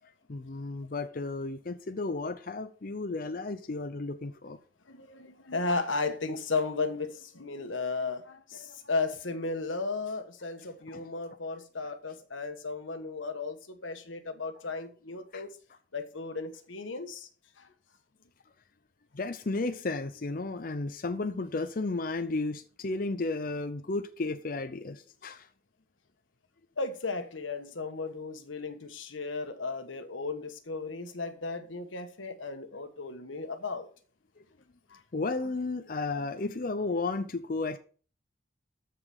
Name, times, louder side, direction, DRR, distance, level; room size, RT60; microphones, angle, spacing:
voice 1, 0.3-4.6 10.9-11.0 15.3-15.4 19.1-25.5 35.1-37.8, left 3 dB, 45° left, 0.6 m, -33 dB
voice 2, 4.9-15.5 15.9-17.3 17.6-17.7 26.8-33.9 34.9-35.0, left 3 dB, 85° left, 1.4 m, -35 dB
13.5 x 5.0 x 5.5 m
head